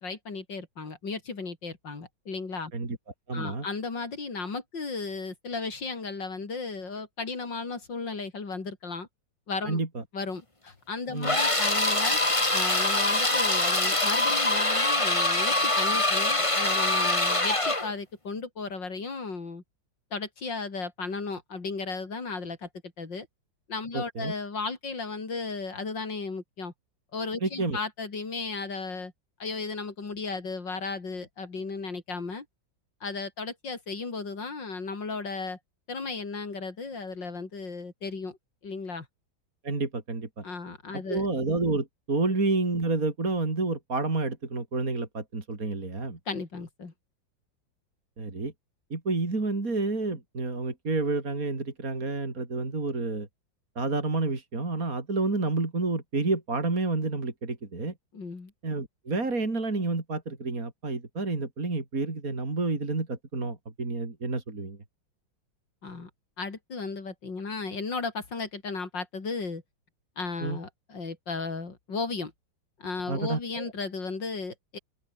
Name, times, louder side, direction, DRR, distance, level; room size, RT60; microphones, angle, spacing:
voice 1, 0.0-2.7 3.3-9.1 9.5-9.8 10.1-12.2 12.5-19.6 20.1-22.7 23.0-23.3 23.7-26.7 27.1-29.1 29.4-32.5 33.0-35.6 35.9-38.4 38.6-39.1 40.4-41.3 42.3-42.4 46.3-46.9 58.1-58.5 65.8-66.1 66.4-69.6 70.2-72.3 72.8-74.8, left 4 dB, 65° left, 4.3 m, -35 dB
voice 2, 3.3-3.7 9.7-10.0 11.1-11.4 23.9-24.3 27.4-27.8 39.6-40.4 40.9-46.2 48.2-48.5 48.9-53.3 53.8-57.9 58.6-64.8 70.4-70.6 73.1-73.7, right 3 dB, 45° right, 4.3 m, -29 dB
sound 1, 11.2-17.9, left 2 dB, 15° left, 2.7 m, -24 dB
open air
omnidirectional pair, 2.1 m